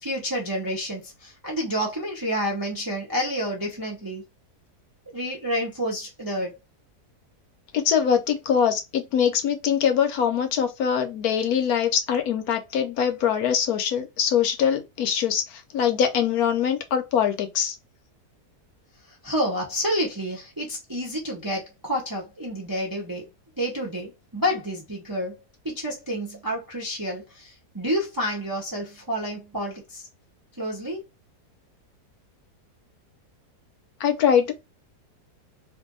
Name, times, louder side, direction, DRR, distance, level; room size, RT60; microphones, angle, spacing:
voice 1, 0.0-4.2 5.1-6.6 19.2-23.3 23.6-25.3 25.6-30.0 30.6-31.0, equal, 25° right, 0.5 m, -29 dB
voice 2, 7.7-17.7 34.0-34.5, left 8 dB, 70° left, 1.1 m, -23 dB
2.7 x 2.5 x 3.7 m
omnidirectional pair, 1.7 m